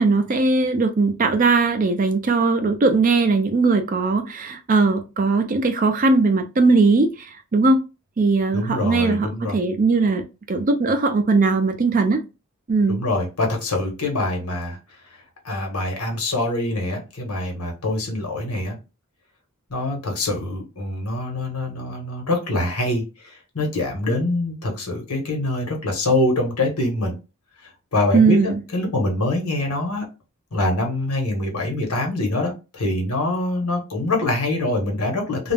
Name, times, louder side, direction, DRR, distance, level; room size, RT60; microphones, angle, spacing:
voice 1, 0.0-7.8 8.2-12.2 12.7-13.0 28.1-28.6, right 3 dB, 35° right, 0.4 m, -19 dB
voice 2, 8.5-9.6 12.9-14.8 15.4-18.8 19.7-27.2 27.9-30.0 30.5-35.5, left 2 dB, 90° left, 1.0 m, -24 dB
2.4 x 2.0 x 3.3 m
head